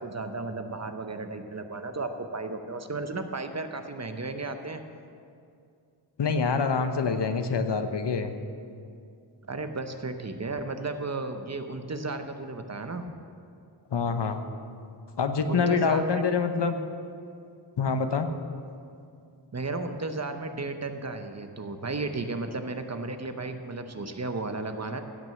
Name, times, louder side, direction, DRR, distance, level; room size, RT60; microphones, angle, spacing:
voice 1, 0.0-4.8 9.5-13.1 15.5-16.2 19.5-25.0, right 3 dB, 35° right, 7 dB, 0.9 m, -34 dB
voice 2, 6.2-8.3 13.9-14.4 15.2-16.8 17.8-18.3, left 5 dB, 65° left, 8 dB, 0.9 m, -26 dB
16.0 x 6.2 x 7.7 m, 2.4 s
wide cardioid pair, 100°, 44 cm